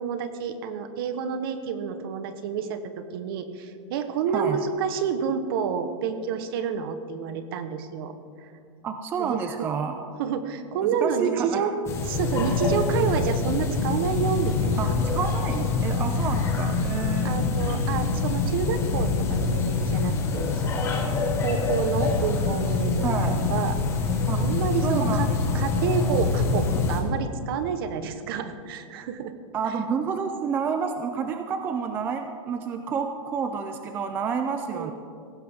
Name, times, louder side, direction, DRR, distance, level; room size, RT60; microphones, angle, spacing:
voice 1, 0.0-8.5 9.2-9.7 10.2-11.7 12.1-14.9 17.2-20.9 21.4-23.8 24.3-25.3 25.5-29.3 29.7-29.8 34.7-34.9, right 7 dB, 45° right, 10 dB, 1.1 m, -29 dB
voice 2, 8.8-10.0 10.8-11.7 14.8-17.4 23.0-23.4 24.3-24.4 24.8-25.7 29.5-34.9, right 6 dB, 10° right, 7 dB, 0.4 m, -29 dB
sound 1, 11.9-27.0, left 4 dB, 15° left, 1.5 m, -25 dB
17.0 x 15.5 x 3.6 m, 2.4 s
supercardioid pair, 160°, 17 cm